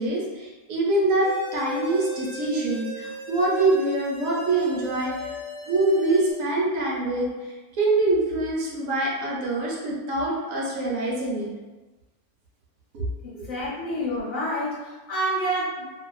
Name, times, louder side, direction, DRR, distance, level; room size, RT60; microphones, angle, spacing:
voice 1, 0.0-5.3 5.7-11.5 12.9-13.0 13.3-13.4, right 2 dB, 70° right, -4 dB, 1.0 m, -25 dB
sound 1, 1.2-6.3, left 1 dB, 45° left, 0.4 m, -37 dB
voice 2, 13.2-15.9, right 1 dB, 10° left, -10 dB, 0.8 m, -28 dB
2.5 x 2.3 x 2.3 m, 1.2 s
omnidirectional pair, 1.5 m